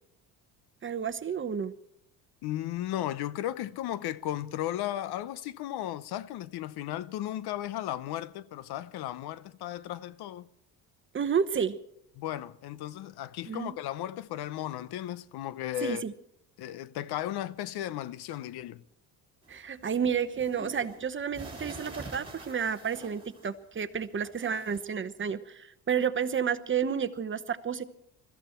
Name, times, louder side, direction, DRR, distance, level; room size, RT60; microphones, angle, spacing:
voice 1, 0.8-1.7 11.1-11.8 13.5-13.7 15.8-16.1 19.5-27.8, right 7 dB, 30° right, 1.0 m, -31 dB
voice 2, 2.4-10.5 12.2-16.0 16.6-18.8, left 13 dB, 75° left, 0.8 m, -35 dB
bed sheets moving hitting scratching, 19.4-23.7 24.0-24.8, right 3 dB, 15° right, 4.7 m, -46 dB
22.0 x 14.5 x 4.4 m
cardioid pair, 110°, 39 cm